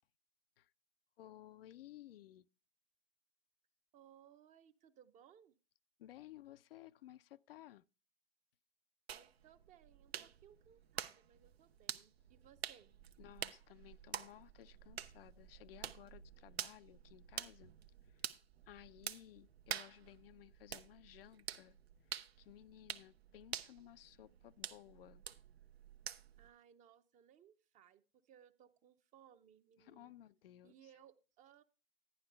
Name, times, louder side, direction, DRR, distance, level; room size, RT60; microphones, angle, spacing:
voice 1, 1.2-2.5 6.0-7.8 13.2-17.7 18.0-18.3 18.7-21.8 22.0-25.2 29.8-30.7, left 13 dB, 70° left, 0.5 m, -58 dB
voice 2, 3.9-5.6 9.1-13.0 26.4-30.2 30.6-31.6, right 9 dB, 25° right, 0.7 m, -64 dB
sound 1, 9.1-26.5, right 9 dB, 85° right, 0.8 m, -48 dB
11.0 x 10.5 x 3.3 m
hypercardioid pair, 120°, 30 cm